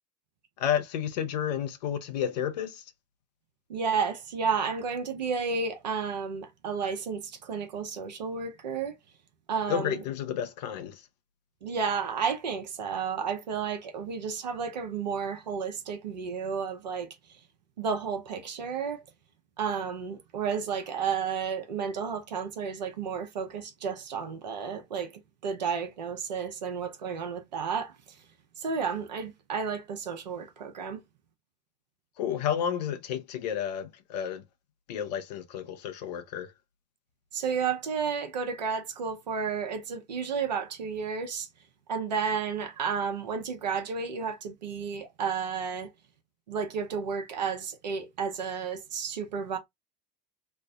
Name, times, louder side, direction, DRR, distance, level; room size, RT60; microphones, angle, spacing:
voice 1, 0.6-2.9 9.7-11.1 32.2-34.4 34.9-36.5, left 9 dB, 75° left, 0.8 m, -31 dB
voice 2, 3.7-8.9 9.5-10.0 11.6-17.2 17.8-19.0 19.6-25.1 25.4-27.9 28.6-31.0 37.3-41.5 41.9-45.9 46.5-49.6, right 6 dB, 90° right, 0.9 m, -32 dB
3.3 x 2.2 x 3.6 m
hypercardioid pair, 80°, 21 cm